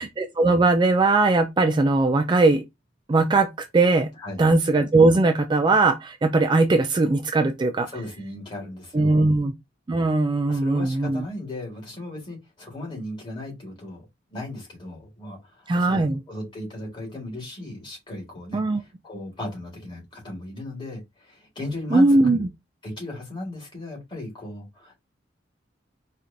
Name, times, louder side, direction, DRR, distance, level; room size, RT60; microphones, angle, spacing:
voice 1, 0.0-2.6 3.1-4.1 4.4-7.9 8.9-9.5 9.9-11.2 15.7-16.2 18.5-18.8 21.9-22.5, right 2 dB, 25° right, 0.3 m, -20 dB
voice 2, 7.9-9.3 10.5-14.1 14.3-22.4 22.8-25.0, left 1 dB, 25° left, 1.8 m, -36 dB
4.4 x 2.4 x 2.6 m
head